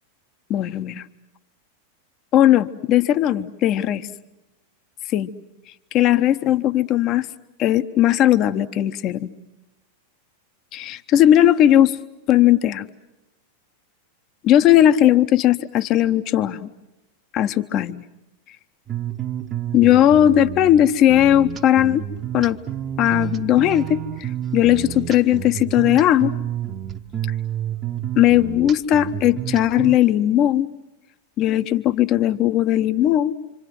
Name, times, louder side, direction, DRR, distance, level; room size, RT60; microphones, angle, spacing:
voice 1, 0.5-1.0 2.3-4.1 5.1-5.3 5.9-7.3 7.6-9.3 10.7-12.0 12.3-12.9 14.4-16.7 17.3-18.0 19.7-22.0 22.3-22.6 23.0-26.3 28.2-30.7 31.4-33.3, left 12 dB, 35° left, 12 dB, 0.9 m, -17 dB
sound 1, 18.9-30.0, right 11 dB, 25° right, 1.0 m, -30 dB
26.5 x 26.5 x 7.6 m, 0.95 s
figure-of-eight pair, 90°, 0 cm